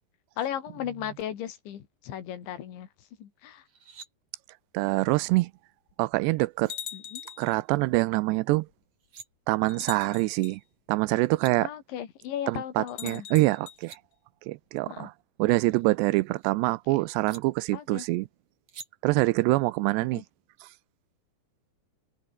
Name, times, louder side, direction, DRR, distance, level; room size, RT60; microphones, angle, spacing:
voice 1, 0.4-2.9 3.2-3.6 6.9-7.2 11.6-13.3 14.9-15.1 16.9-17.0 17.7-18.1 20.1-20.2, left 10 dB, 90° left, 4.9 m, -36 dB
sound 1, 3.6-4.1 6.1-6.2 6.6-6.8 8.8-9.3 10.9-11.0 11.2-11.5 13.5-14.0 15.5-16.5 17.3-17.4 18.7-18.9, right 6 dB, 40° right, 4.7 m, -48 dB
voice 2, 4.7-5.5 6.0-6.7 7.4-8.7 9.5-10.6 10.9-11.7 12.5-14.0 14.5-15.1 15.4-18.3 19.0-20.2, right 21 dB, 80° right, 2.6 m, -25 dB
sound 2, 5.0-5.1 5.9-6.0 6.7-7.5 8.7-8.8 9.7-10.6 12.9-13.8, left 10 dB, 55° left, 3.3 m, -41 dB
omnidirectional pair, 5.1 m